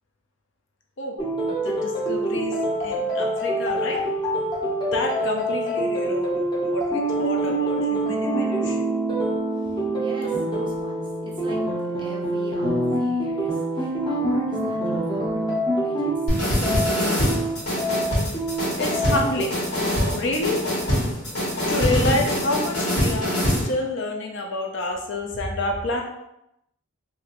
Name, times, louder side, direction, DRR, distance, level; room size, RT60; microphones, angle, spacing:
sound 1, 1.2-19.5, right 1 dB, 20° left, 0.7 m, -25 dB
voice 1, 1.6-4.0 4.9-6.3 6.7-8.9 18.8-19.5 20.1-20.6 21.7-26.0, left 2 dB, 55° left, 2 dB, 0.5 m, -28 dB
voice 2, 10.0-11.6 12.0-13.5 13.8-17.5, right 1 dB, 20° right, -2 dB, 0.4 m, -40 dB
sound 2, 16.3-23.7, equal, 85° left, 1.5 m, -24 dB
2.9 x 2.6 x 2.9 m, 0.84 s
head